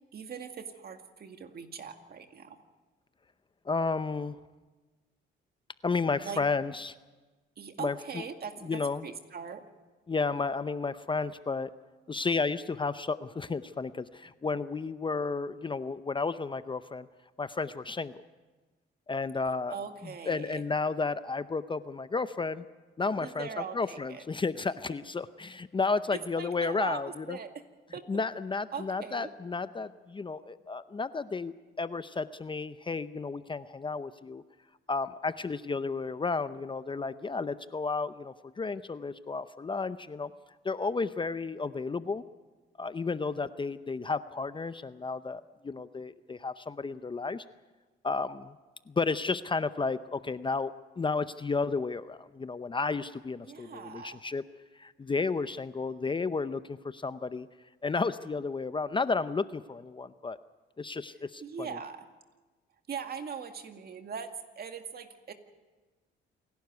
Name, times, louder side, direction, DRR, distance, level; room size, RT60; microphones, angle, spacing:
voice 1, 0.1-2.6 6.2-6.4 7.6-9.6 19.7-20.6 23.2-24.2 26.1-27.0 27.3-27.6 27.9-28.0 28.7-29.3 53.5-54.2 61.4-62.1 62.9-65.3, right 6 dB, 50° right, 6 dB, 2.1 m, -40 dB
voice 2, 3.7-4.4 5.8-6.9 7.8-8.2 8.6-9.1 10.1-11.7 12.1-17.1 17.4-18.2 19.1-19.8 20.0-22.6 23.0-27.4 28.1-34.4 34.9-40.3 40.6-42.2 42.8-47.4 48.0-48.6 48.9-54.4 54.7-57.5 57.8-60.4 60.8-61.8, left 4 dB, 25° left, 13 dB, 0.7 m, -32 dB
28.0 x 12.0 x 9.5 m, 1.3 s
cardioid pair, 90°, 20 cm